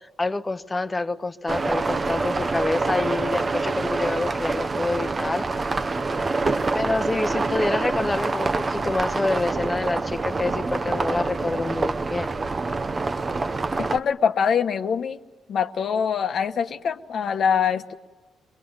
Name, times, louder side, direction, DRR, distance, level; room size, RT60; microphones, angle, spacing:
voice 1, 0.0-5.5 6.7-12.3, left 2 dB, 20° left, 10 dB, 1.0 m, -27 dB
sound 1, 1.5-14.0, right 3 dB, 30° right, 0.8 m, -26 dB
voice 2, 13.8-15.2 15.5-17.9, left 7 dB, 60° left, 8 dB, 1.1 m, -24 dB
23.0 x 22.0 x 9.7 m, 1.2 s
cardioid pair, 90°, 0 cm